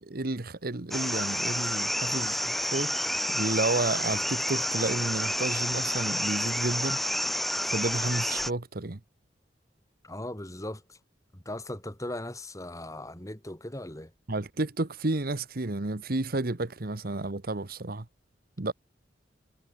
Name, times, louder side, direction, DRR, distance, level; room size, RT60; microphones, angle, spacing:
voice 1, 0.0-7.0 7.6-9.0 14.3-18.1 18.6-18.7, right 2 dB, 55° right, 1.2 m, -31 dB
sound 1, 0.9-8.5, equal, ahead, 1.2 m, -29 dB
voice 2, 10.0-11.0 11.3-14.1, left 1 dB, 20° left, 3.3 m, -38 dB
head